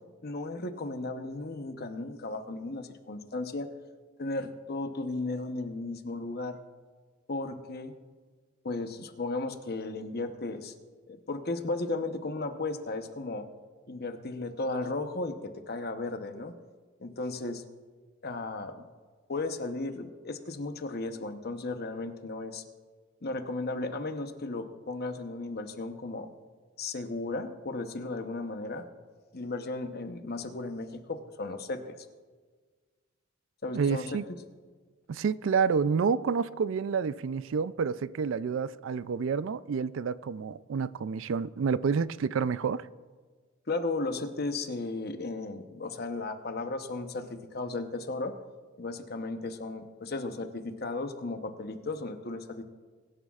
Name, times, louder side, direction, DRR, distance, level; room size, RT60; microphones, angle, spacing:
voice 1, 0.2-3.7 4.2-6.6 7.3-7.9 8.6-10.7 11.1-13.5 13.9-16.5 17.0-17.6 18.2-18.9 19.3-22.6 23.2-26.3 26.8-28.8 29.3-32.1 33.6-34.2 43.7-48.3 48.8-52.6, left 2 dB, 50° left, 0.9 m, -35 dB
voice 2, 33.7-34.2 35.1-42.9, right 6 dB, 65° right, 0.4 m, -29 dB
22.5 x 11.0 x 2.4 m
head